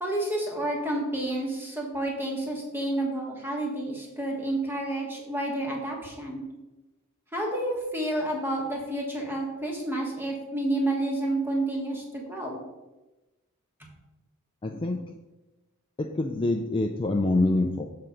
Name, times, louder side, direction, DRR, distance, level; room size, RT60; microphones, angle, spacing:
voice 1, 0.0-6.4 7.3-12.6 13.8-13.9, right 1 dB, 10° right, -1 dB, 1.4 m, -30 dB
voice 2, 14.6-15.0 16.0-17.9, left 2 dB, 25° left, 3 dB, 0.4 m, -25 dB
6.6 x 3.8 x 5.7 m, 1.1 s
head